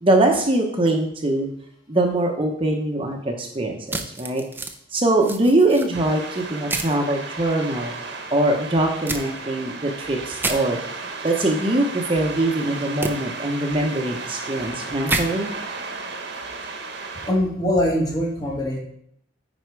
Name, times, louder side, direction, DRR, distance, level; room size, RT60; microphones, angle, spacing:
voice 1, 0.0-1.5 1.9-4.4 4.9-7.9 8.3-10.8 11.2-15.5, right 2 dB, 30° right, 2 dB, 0.9 m, -22 dB
sound 1, 3.9-4.7 5.2-5.9 6.7-6.9 9.1-9.2 10.4-10.6 13.0-13.1 15.1-15.2, right 2 dB, 10° right, 0.6 m, -27 dB
sound 2, 5.9-17.3, right 3 dB, 65° right, 1.2 m, -34 dB
voice 2, 17.3-18.8, left 1 dB, 20° left, -1 dB, 1.6 m, -22 dB
9.4 x 4.2 x 4.7 m, 0.69 s
head